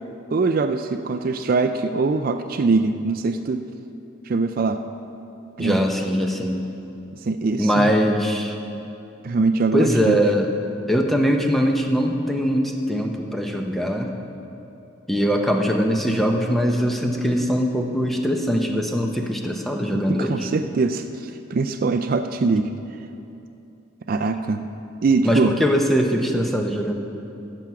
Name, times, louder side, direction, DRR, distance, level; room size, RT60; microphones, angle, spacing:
voice 1, 0.3-3.6 4.3-4.8 5.6-5.8 7.2-7.9 9.2-10.2 19.9-22.7 24.1-24.7 25.0-25.5, right 4 dB, 45° right, 8 dB, 0.3 m, -22 dB
voice 2, 5.6-6.6 7.6-8.6 9.7-10.5 10.9-14.1 15.1-20.5 25.2-26.9, equal, ahead, 2 dB, 0.7 m, -21 dB
14.5 x 6.1 x 5.9 m, 2.8 s
head